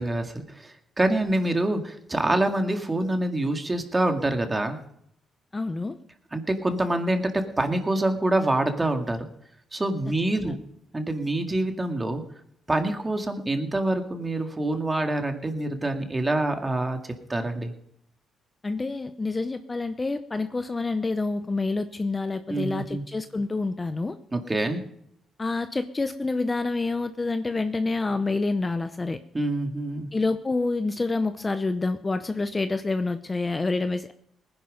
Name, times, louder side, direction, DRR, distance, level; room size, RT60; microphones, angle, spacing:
voice 1, 0.0-4.8 6.3-9.3 9.7-10.6 10.9-12.2 12.7-17.7 22.5-23.0 24.3-24.8 29.3-30.1, right 1 dB, 20° right, 5 dB, 2.0 m, -26 dB
voice 2, 5.5-6.0 10.4-10.5 18.6-24.2 25.4-29.2 30.1-34.1, left 3 dB, 25° left, 10 dB, 0.8 m, -27 dB
19.0 x 10.5 x 5.2 m, 0.73 s
cardioid pair, 90°, 0 cm